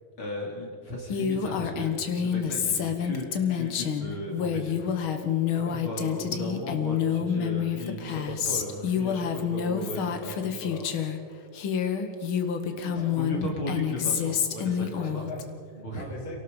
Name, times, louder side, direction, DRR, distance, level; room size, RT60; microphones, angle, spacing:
voice 1, 0.2-11.4 12.7-15.2 15.8-16.0, left 1 dB, 40° left, -1 dB, 3.4 m, -36 dB
Female speech woman speaking, 1.1-11.2 11.5-15.4, left 8 dB, 60° left, 1.4 m, -28 dB
voice 2, 12.9-13.3 15.0-16.4, left 1 dB, 20° left, 0 dB, 2.7 m, -41 dB
28.0 x 18.0 x 5.3 m, 2.2 s
omnidirectional pair, 3.9 m